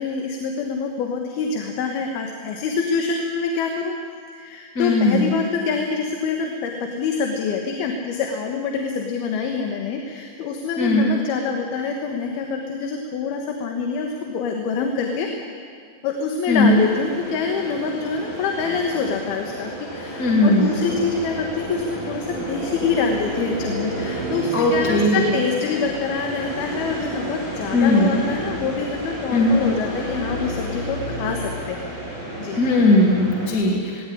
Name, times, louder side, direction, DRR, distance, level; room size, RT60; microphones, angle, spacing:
voice 1, 0.0-3.9 4.3-15.3 16.0-31.9 32.4-32.6, left 5 dB, 85° left, 2 dB, 3.3 m, -26 dB
voice 2, 4.7-5.4 10.8-11.1 16.5-16.7 20.2-20.7 24.5-25.2 27.7-28.1 29.3-29.6 32.5-34.1, left 2 dB, 25° left, -1 dB, 2.8 m, -18 dB
sound 1, 16.5-33.5, right 1 dB, 40° left, 9.0 m, -31 dB
18.5 x 17.0 x 10.0 m, 2.3 s
omnidirectional pair, 4.3 m